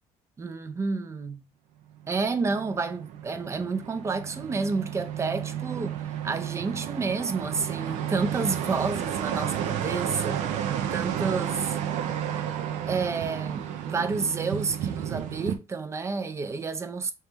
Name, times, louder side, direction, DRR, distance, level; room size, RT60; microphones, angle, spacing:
voice 1, 0.4-1.5 2.1-11.8 12.9-17.1, right 4 dB, 25° right, 0.5 m, -30 dB
sound 1, 2.1-15.6, right 10 dB, 85° right, 0.6 m, -32 dB
3.1 x 2.9 x 3.4 m
cardioid pair, 140°, 12 cm